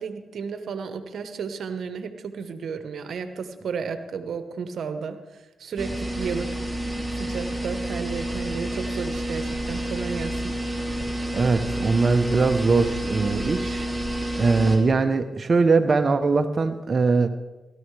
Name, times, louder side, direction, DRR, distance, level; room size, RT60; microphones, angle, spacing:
voice 1, 0.0-10.5, right 5 dB, 70° right, 9 dB, 1.1 m, -33 dB
sound 1, 5.8-14.8, right 1 dB, 5° right, 2.9 m, -29 dB
voice 2, 11.3-13.9 14.3-17.3, right 4 dB, 50° right, 7 dB, 0.8 m, -21 dB
17.0 x 13.0 x 3.3 m, 1.1 s
hypercardioid pair, 40°, 0 cm